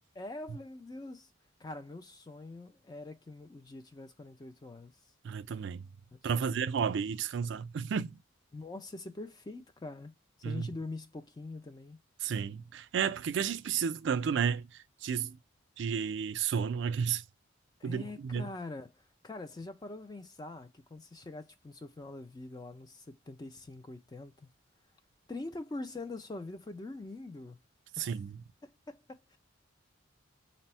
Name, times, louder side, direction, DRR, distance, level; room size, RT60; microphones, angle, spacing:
voice 1, 0.1-1.3 1.6-4.9 6.4-6.7 8.5-10.1 10.4-12.0 17.8-24.5 25.3-27.6 28.0-28.2 28.6-29.4, left 2 dB, 20° left, 0.3 m, -44 dB
voice 2, 5.2-5.8 6.2-8.2 10.4-10.7 12.2-14.7 15.0-15.4 15.8-17.2 17.8-18.5 28.0-28.3, right 7 dB, 60° right, 0.3 m, -32 dB
4.1 x 2.0 x 4.2 m
head